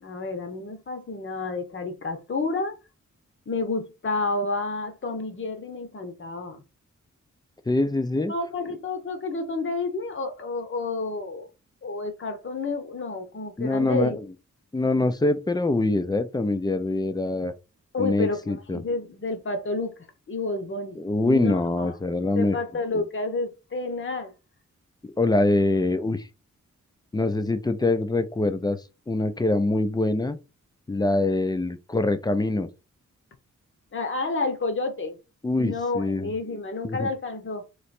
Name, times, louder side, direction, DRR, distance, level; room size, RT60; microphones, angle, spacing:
voice 1, 0.0-2.8 3.5-6.6 8.3-11.5 11.8-14.2 17.9-20.0 20.3-21.9 22.4-24.3 33.9-35.2 35.6-37.6, left 3 dB, 40° left, 0.8 m, -30 dB
voice 2, 7.7-8.3 13.6-14.2 14.7-17.5 18.0-18.8 21.0-22.6 22.9-23.0 25.0-26.3 27.1-28.8 29.1-30.4 30.9-32.7 35.4-36.3 36.8-37.1, left 2 dB, 15° left, 0.4 m, -24 dB
3.2 x 3.0 x 4.3 m
wide cardioid pair, 165°, 30 cm